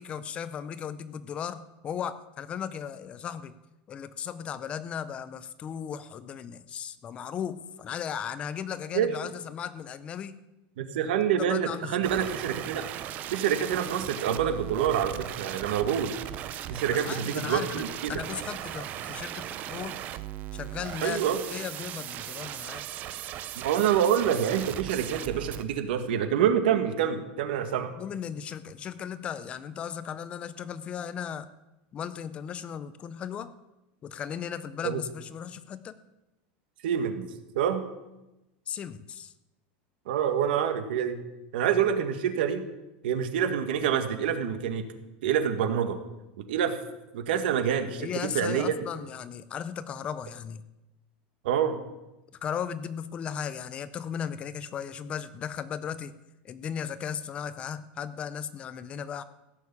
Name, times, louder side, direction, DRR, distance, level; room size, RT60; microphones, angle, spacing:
voice 1, 0.0-3.5 3.9-10.4 11.4-12.1 16.9-17.8 18.1-20.0 20.5-22.8 28.0-31.5 31.9-33.5 34.0-36.0 38.7-39.3 48.0-50.6 52.4-56.1 56.4-59.2, left 8 dB, 20° left, 15 dB, 0.5 m, -36 dB
voice 2, 10.8-12.9 13.3-16.1 16.7-18.1 21.0-21.4 23.5-27.9 34.8-35.0 36.8-37.3 37.5-37.8 40.1-41.2 41.5-42.6 43.0-44.8 45.2-46.0 46.4-46.7 47.1-48.7 51.4-51.8, right 9 dB, 80° right, 8 dB, 1.7 m, -27 dB
sound 1, 12.0-25.6, right 12 dB, 30° right, 0.6 m, -38 dB
15.5 x 6.6 x 8.4 m, 0.98 s
supercardioid pair, 170°, 5 cm